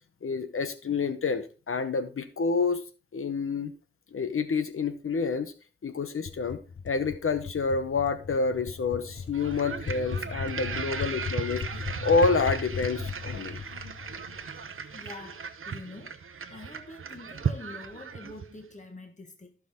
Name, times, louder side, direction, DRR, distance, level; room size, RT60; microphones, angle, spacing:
voice 1, 0.2-2.8 3.1-3.7 4.1-5.5 5.8-6.6 6.8-11.6 12.0-13.6, left 4 dB, 85° left, 0.9 m, -28 dB
sound 1, 6.3-14.9, left 6 dB, 60° left, 0.6 m, -38 dB
sound 2, 6.9-14.5, right 3 dB, 20° right, 1.6 m, -48 dB
sound 3, 9.3-18.6, right 6 dB, 80° right, 0.8 m, -37 dB
voice 2, 14.9-16.2 16.5-19.6, left 2 dB, 35° left, 1.5 m, -45 dB
14.0 x 6.0 x 3.6 m
wide cardioid pair, 90°, 21 cm